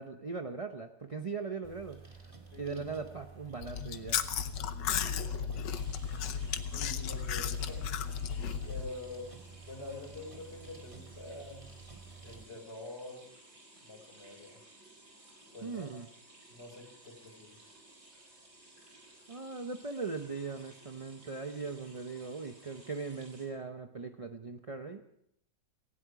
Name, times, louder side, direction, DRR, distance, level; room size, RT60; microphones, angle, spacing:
voice 1, 0.0-2.3 2.6-4.5 15.6-16.1 19.3-25.0, right 4 dB, 45° right, 6 dB, 0.4 m, -40 dB
sound 1, 1.6-12.4, right 4 dB, 20° right, 1.9 m, -52 dB
Chewing mastication, 3.6-8.9, left 8 dB, 80° left, 1.5 m, -34 dB
voice 2, 4.9-5.3 6.7-7.8 8.6-9.3 9.6-11.7 12.2-13.3 13.8-14.6 15.5-16.0 16.5-17.6, left 2 dB, 35° left, 2 dB, 4.9 m, -46 dB
sound 2, 5.7-23.5, right 1 dB, 60° right, 4.8 m, -57 dB
18.5 x 16.5 x 4.8 m, 0.74 s
omnidirectional pair, 1.9 m